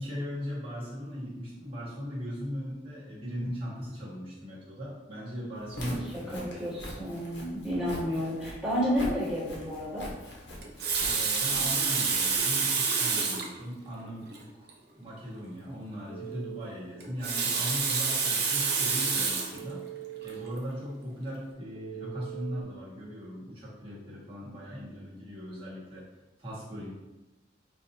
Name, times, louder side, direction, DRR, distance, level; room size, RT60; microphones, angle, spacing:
voice 1, 0.0-6.7 11.1-14.7 15.0-19.8 20.2-26.0 26.4-26.9, equal, 35° right, -8 dB, 1.4 m, -38 dB
Walk footsteps, 5.6-12.4, equal, 85° left, 1.0 m, -42 dB
voice 2, 6.3-10.1, equal, 5° right, -9 dB, 1.4 m, -31 dB
Water tap faucet, 10.6-13.5 14.3-14.4 14.7-14.8 17.0-19.6 20.3-20.5, right 5 dB, 65° right, 0.7 m, -28 dB
Telephone, 16.1-16.6 19.5-20.5 21.8-22.6, right 14 dB, 40° left, 0.5 m, -42 dB
5.1 x 2.6 x 2.7 m, 1.1 s
head